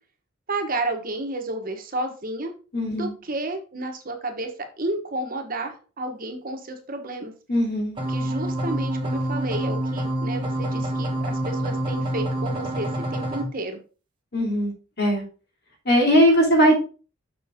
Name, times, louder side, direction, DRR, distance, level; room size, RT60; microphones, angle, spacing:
voice 1, 0.5-2.5 2.9-4.5 4.8-7.3 8.1-13.8, right 2 dB, 45° right, 4 dB, 1.3 m, -31 dB
voice 2, 2.7-3.1 7.5-8.0 14.3-15.2 15.8-16.7, equal, 55° left, 0 dB, 2.9 m, -19 dB
sound 1, 8.0-13.4, right 1 dB, 25° right, 1.3 m, -27 dB
6.8 x 6.4 x 3.7 m, 0.35 s
head